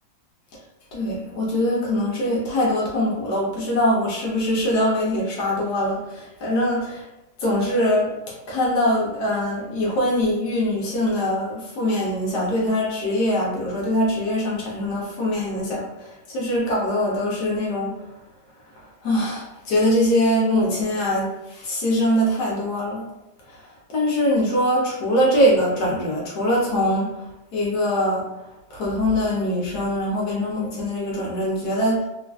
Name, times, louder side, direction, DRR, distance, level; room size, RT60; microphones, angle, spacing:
voice 1, 0.9-7.1 7.4-18.0 18.8-23.1 23.5-28.3 28.7-32.1, left 1 dB, 65° left, -4 dB, 1.1 m, -23 dB
3.1 x 2.4 x 2.3 m, 0.95 s
omnidirectional pair, 2.2 m